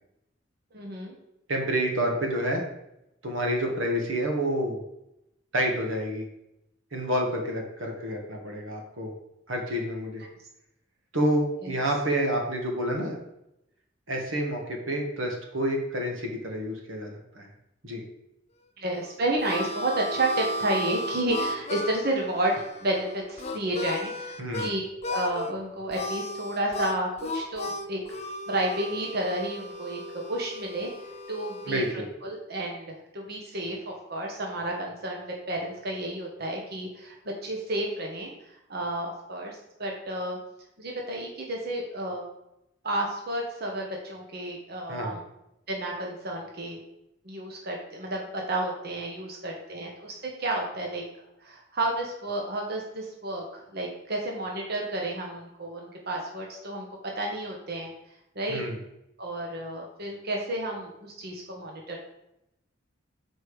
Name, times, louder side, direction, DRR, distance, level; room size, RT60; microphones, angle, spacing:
voice 1, 0.7-1.2 11.6-11.7 18.8-28.0 28.5-30.0 30.3-30.9 31.3-37.2 37.4-38.3 38.7-40.4 40.8-42.2 42.8-45.2 45.7-46.8 47.2-51.0 51.4-56.9 57.2-57.9 58.3-58.6 59.2-62.0, right 1 dB, 55° right, 0 dB, 1.1 m, -31 dB
voice 2, 1.5-2.6 3.2-4.8 5.5-6.3 6.9-9.1 9.5-10.2 11.1-13.2 14.1-17.5 17.8-18.0 24.4-24.7 31.7-32.1 44.9-45.2 58.5-58.8, right 1 dB, 85° right, 1 dB, 1.5 m, -28 dB
Harmonica, 18.9-24.7 25.0-25.5 25.9-31.9, left 1 dB, 35° left, 0.6 m, -35 dB
6.6 x 4.7 x 4.9 m, 0.85 s
head